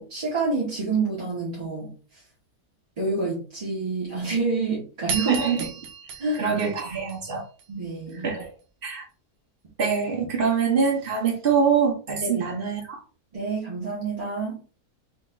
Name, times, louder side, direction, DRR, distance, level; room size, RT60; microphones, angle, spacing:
voice 1, 0.0-1.9 3.0-5.4 6.2-6.4 7.7-8.4 12.2-12.5 13.3-14.6, right 3 dB, 30° right, 1.0 m, -28 dB
sound 1, 5.1-7.6, right 6 dB, 80° right, 1.2 m, -34 dB
voice 2, 5.3-5.7 6.4-7.4 8.2-8.5 8.8-9.0 9.8-13.0, right 6 dB, 50° right, 0.7 m, -24 dB
4.0 x 3.1 x 2.3 m
omnidirectional pair, 1.6 m